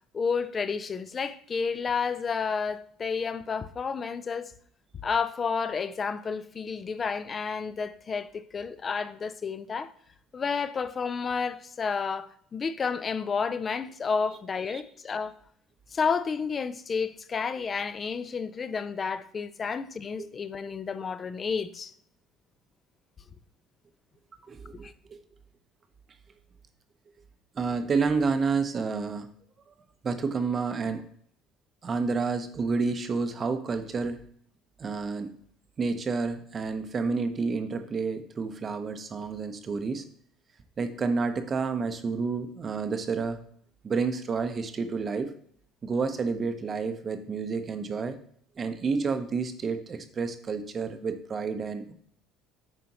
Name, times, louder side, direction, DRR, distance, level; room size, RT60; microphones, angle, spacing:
voice 1, 0.1-4.5 5.0-9.9 10.3-15.3 15.9-21.9 24.8-24.9, left 5 dB, 30° left, 0.4 m, -31 dB
voice 2, 24.5-25.2 27.5-29.3 30.0-31.0 31.8-34.2 34.8-35.3 35.8-40.0 40.8-43.4 43.8-45.3 45.8-48.2 48.6-51.9, right 4 dB, 30° right, 0.7 m, -29 dB
7.7 x 5.0 x 2.9 m
cardioid pair, 135°, 0 cm